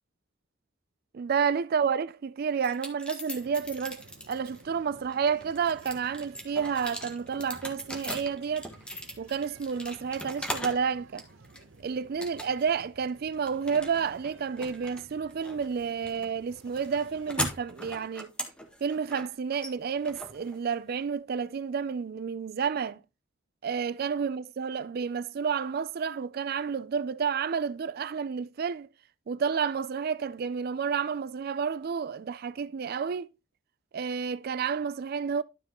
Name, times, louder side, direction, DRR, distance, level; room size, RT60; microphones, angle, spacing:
voice 1, 1.1-8.7 9.2-11.2 11.8-18.3 18.8-23.0 23.6-28.9 29.3-33.3 33.9-35.4, right 6 dB, 55° right, 0.4 m, -30 dB
sound 1, 2.6-4.6 5.1-10.9 11.2-11.8 12.2-12.8 13.1-21.0, equal, 5° left, 1.5 m, -39 dB
sound 2, 3.3-17.5, right 3 dB, 85° right, 0.9 m, -55 dB
12.0 x 5.2 x 3.0 m
head